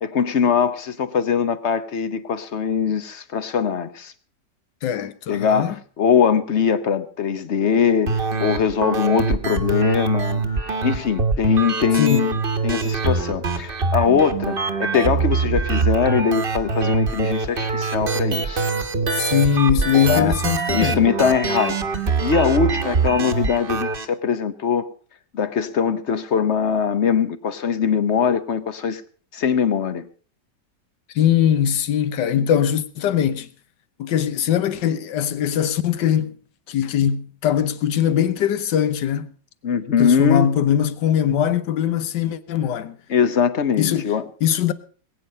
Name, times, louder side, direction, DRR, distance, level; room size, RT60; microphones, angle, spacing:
voice 1, 0.0-4.1 5.3-10.4 10.8-12.4 12.6-18.6 20.1-20.3 20.7-21.8 22.2-24.9 25.3-29.0 29.3-30.1 39.6-40.5 43.1-44.2, left 7 dB, 50° left, 0.9 m, -21 dB
voice 2, 4.8-5.7 12.0-12.3 19.1-21.0 31.1-33.5 34.0-36.4 36.7-39.3 40.0-43.0 43.8-44.1 44.4-44.7, left 9 dB, 80° left, 1.6 m, -21 dB
sound 1, 8.1-24.1, right 4 dB, 35° right, 1.2 m, -24 dB
20.5 x 9.3 x 5.4 m
omnidirectional pair, 1.9 m